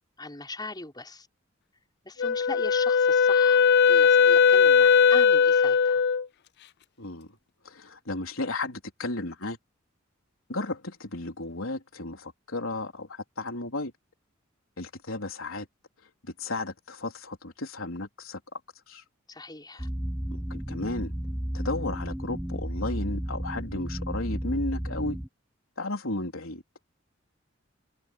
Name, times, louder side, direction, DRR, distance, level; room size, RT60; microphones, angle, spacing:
voice 1, 0.2-1.3 2.0-6.0 19.3-19.9, left 2 dB, 20° left, 6.0 m, -40 dB
Wind instrument woodwind instrument, 2.2-6.3, left 6 dB, 55° left, 0.4 m, -19 dB
voice 2, 7.0-7.3 7.6-9.6 10.5-13.9 14.8-15.7 16.2-18.6 18.9-19.0 20.3-21.1 21.5-25.2 25.8-26.6, left 2 dB, 85° left, 3.9 m, -34 dB
sound 1, 19.8-25.3, equal, 5° right, 0.6 m, -33 dB
head